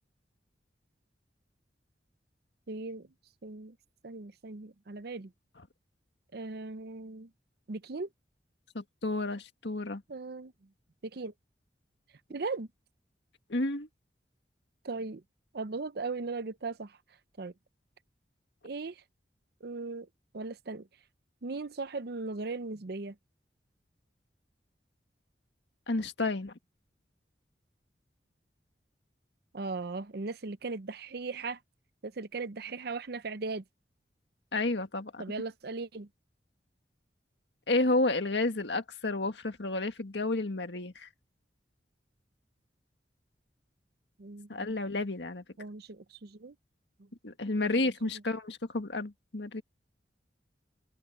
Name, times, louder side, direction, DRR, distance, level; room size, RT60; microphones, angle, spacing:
voice 1, 2.7-3.1 3.4-3.8 4.0-5.3 6.3-7.3 7.7-8.1 10.1-10.5 11.1-11.3 12.3-12.7 14.8-15.2 15.5-16.9 17.4-17.5 18.6-19.0 19.6-20.1 20.3-20.9 21.4-23.2 29.5-31.6 32.0-33.6 35.2-36.1 44.2-44.7 45.6-46.5 47.6-47.7, right 3 dB, 60° right, 0.7 m, -38 dB
voice 2, 8.7-10.0 13.5-13.9 25.9-26.5 34.5-35.2 37.7-41.1 44.5-45.4 47.2-49.6, left 2 dB, 75° left, 1.9 m, -31 dB
open air
head